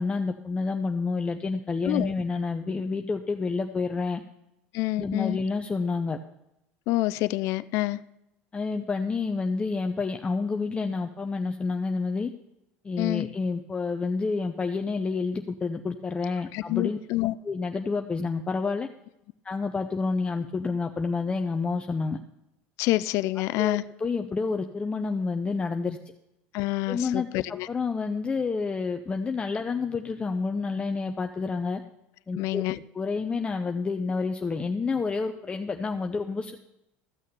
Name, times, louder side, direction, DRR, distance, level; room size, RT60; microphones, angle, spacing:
voice 1, 0.0-4.2 5.0-6.2 8.5-12.3 12.8-17.0 17.4-18.9 19.4-22.2 23.6-26.0 26.9-31.8 32.3-32.6 32.9-36.6, left 4 dB, 20° left, 0.7 m, -29 dB
voice 2, 4.7-5.4 6.9-8.0 13.0-13.3 16.5-17.4 22.8-23.8 26.5-27.7 32.3-32.8, left 18 dB, 60° left, 0.4 m, -27 dB
14.0 x 6.4 x 6.9 m
supercardioid pair, 110°, 6 cm